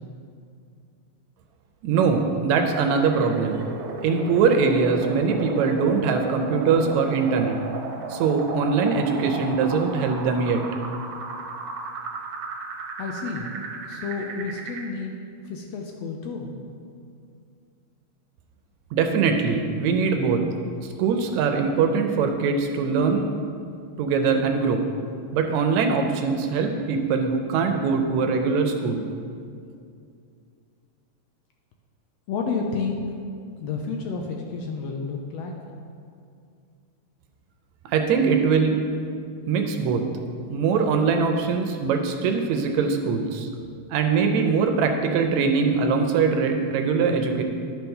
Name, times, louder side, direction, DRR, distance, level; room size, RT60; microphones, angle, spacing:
voice 1, 1.8-3.6 4.0-7.6 8.1-10.6 18.9-20.5 20.8-23.3 24.0-24.9 25.3-29.1 37.9-38.8 39.5-40.1 40.5-43.5 43.9-47.4, right 5 dB, 80° right, 5 dB, 1.9 m, -22 dB
sound 1, 2.9-14.9, right 4 dB, 65° right, 1.7 m, -35 dB
voice 2, 13.0-13.5 13.9-15.1 15.5-16.6 32.3-33.0 33.6-35.5, left 4 dB, 75° left, 2 dB, 1.6 m, -30 dB
10.5 x 4.6 x 5.4 m, 2.3 s
omnidirectional pair, 3.3 m